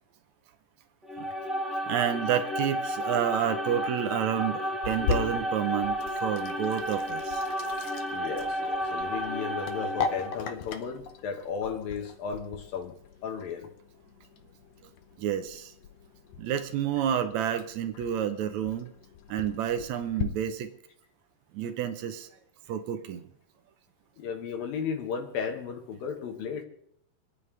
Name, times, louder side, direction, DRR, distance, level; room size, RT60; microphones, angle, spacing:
sound 1, 1.0-10.5, equal, ahead, 0.3 m, -32 dB
voice 1, 1.9-7.4 15.2-15.7 16.4-18.9 19.3-20.7 21.5-22.3 22.7-23.2, right 9 dB, 80° right, 1.6 m, -29 dB
Sink (filling or washing), 4.8-20.2, left 7 dB, 90° left, 1.4 m, -39 dB
voice 2, 8.1-13.0 13.2-13.7 24.2-26.6, left 6 dB, 70° left, 3.1 m, -35 dB
28.5 x 9.6 x 3.4 m
omnidirectional pair, 4.5 m